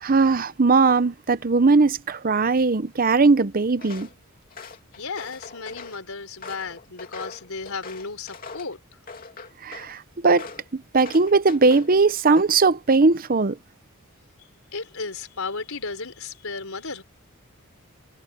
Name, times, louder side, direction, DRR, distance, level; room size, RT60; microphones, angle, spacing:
voice 1, 0.0-4.1 9.6-10.5 10.9-13.5, right 4 dB, 40° right, 0.7 m, -19 dB
Walk footsteps, 3.8-4.1 4.5-6.0 6.4-8.7 9.1-9.9 10.4-10.7 11.0-11.9 12.3-12.7, left 4 dB, 40° left, 2.8 m, -41 dB
voice 2, 4.9-8.8 14.7-17.0, left 4 dB, 75° left, 4.1 m, -34 dB
head